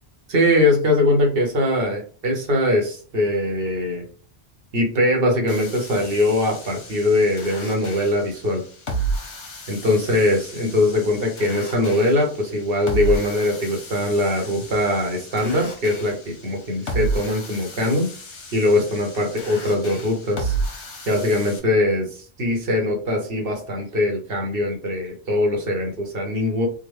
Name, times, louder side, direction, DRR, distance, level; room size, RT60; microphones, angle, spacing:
voice 1, 0.3-4.0 4.7-8.6 9.7-18.1 18.5-20.6 21.1-26.7, left 1 dB, 60° right, 1 dB, 1.2 m, -21 dB
sound 1, 5.5-21.6, right 3 dB, 80° left, 1.2 m, -32 dB
3.7 x 2.2 x 3.2 m, 0.42 s
omnidirectional pair, 1.1 m